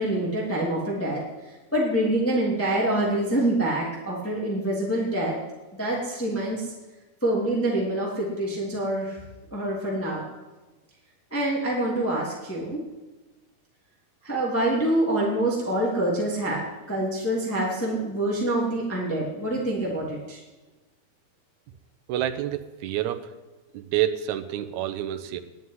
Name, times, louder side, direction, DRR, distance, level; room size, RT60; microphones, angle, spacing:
voice 1, 0.0-5.3 5.8-6.7 7.2-9.2 9.5-10.2 11.3-12.8 14.2-16.6 16.9-20.4, right 1 dB, 5° left, -5 dB, 2.6 m, -26 dB
voice 2, 22.1-23.3 23.7-25.4, right 12 dB, 75° right, 8 dB, 2.2 m, -28 dB
11.5 x 9.2 x 9.6 m, 1.2 s
omnidirectional pair, 3.5 m